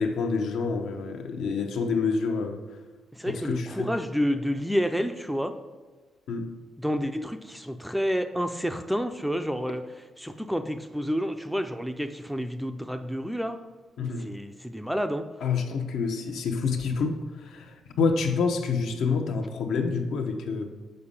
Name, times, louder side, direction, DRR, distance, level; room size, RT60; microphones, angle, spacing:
voice 1, 0.0-2.6 3.3-3.9 6.3-6.5 14.0-14.3 15.4-20.7, left 5 dB, 75° left, 0.9 m, -28 dB
voice 2, 3.1-5.6 6.8-9.8 10.2-13.6 14.0-15.3, equal, ahead, 0.4 m, -29 dB
6.7 x 5.2 x 5.5 m
cardioid pair, 155°, 0 cm